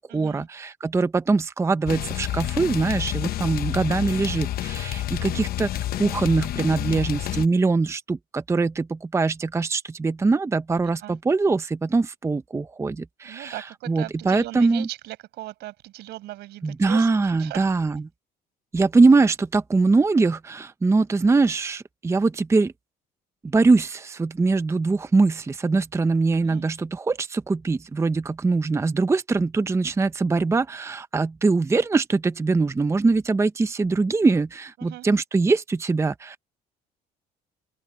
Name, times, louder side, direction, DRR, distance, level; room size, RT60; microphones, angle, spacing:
voice 1, 0.1-0.5 5.1-5.5 6.2-6.4 10.8-11.2 13.2-17.7 26.4-26.7 34.8-35.1, right 16 dB, 80° right, 6.3 m, -39 dB
voice 2, 0.9-4.5 5.4-5.7 6.0-8.0 8.5-8.7 9.1-11.0 11.3-11.6 11.9-12.9 13.9-14.9 16.8-18.0 18.7-20.4 20.8-21.8 22.0-22.7 23.5-23.9 24.4-25.3 25.6-26.7 27.7-28.2 28.4-32.0 32.4-34.5 34.8-35.6 35.9-36.1, right 3 dB, 15° right, 0.7 m, -21 dB
sound 1, 1.9-7.5, left 13 dB, 65° left, 0.9 m, -29 dB
open air
cardioid pair, 110°, 17 cm